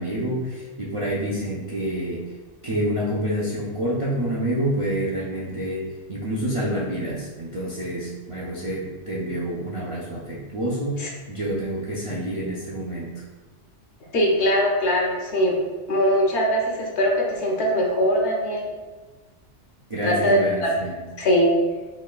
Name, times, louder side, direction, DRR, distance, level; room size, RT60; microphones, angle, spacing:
voice 1, 0.0-2.2 2.6-13.2 19.9-21.0, right 1 dB, 50° right, -6 dB, 0.3 m, -28 dB
voice 2, 14.1-15.6 15.9-18.7 20.0-20.7 21.2-21.5, equal, 70° left, -1 dB, 1.0 m, -21 dB
4.1 x 3.1 x 2.2 m, 1.2 s
omnidirectional pair, 1.2 m